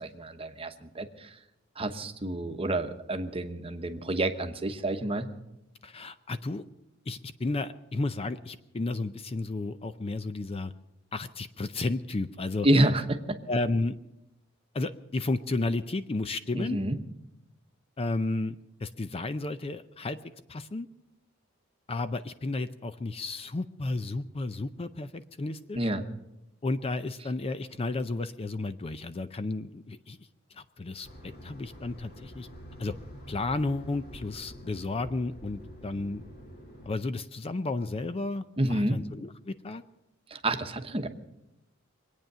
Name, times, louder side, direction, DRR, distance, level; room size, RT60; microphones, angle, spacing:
voice 1, 0.0-1.3 1.8-5.3 12.6-13.4 16.5-17.0 25.7-26.0 38.6-39.0 40.3-41.1, right 1 dB, 30° right, 6 dB, 1.0 m, -28 dB
voice 2, 5.8-6.6 7.1-10.7 11.1-12.7 13.5-14.0 14.7-16.8 18.0-20.2 20.5-20.9 21.9-25.9 26.6-30.2 30.5-32.5 32.8-32.9 33.3-36.2 36.9-39.8, left 2 dB, 30° left, 12 dB, 0.5 m, -32 dB
sound 1, 31.0-36.9, equal, 50° left, 2.6 m, -47 dB
23.5 x 9.0 x 6.7 m, 0.91 s
head